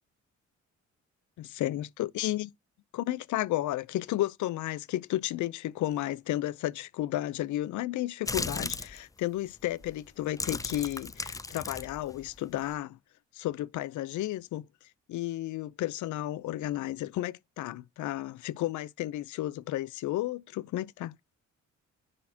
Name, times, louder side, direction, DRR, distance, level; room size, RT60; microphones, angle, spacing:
voice 1, 1.4-2.5 2.9-13.0 13.3-14.7 15.1-21.1, left 15 dB, 75° left, 0.6 m, -33 dB
sound 1, 8.2-9.0 9.7-9.9 10.3-12.7, left 3 dB, 10° left, 0.5 m, -36 dB
9.9 x 4.2 x 2.8 m
cardioid pair, 90°, 30 cm